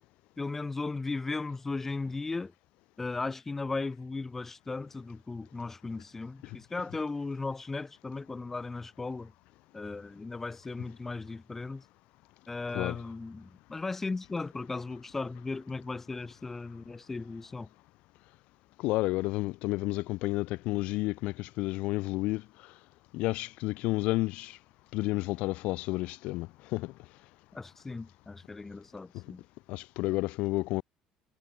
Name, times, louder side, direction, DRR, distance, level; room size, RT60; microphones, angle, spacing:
voice 1, 0.4-2.5 3.0-9.3 9.7-11.8 12.5-17.7 27.5-29.4, left 3 dB, 15° left, 6.7 m, -36 dB
voice 2, 18.8-22.4 23.1-24.6 24.9-26.9 29.1-29.2 29.7-30.8, left 20 dB, 70° left, 4.9 m, -31 dB
cardioid pair, 145°, 2 cm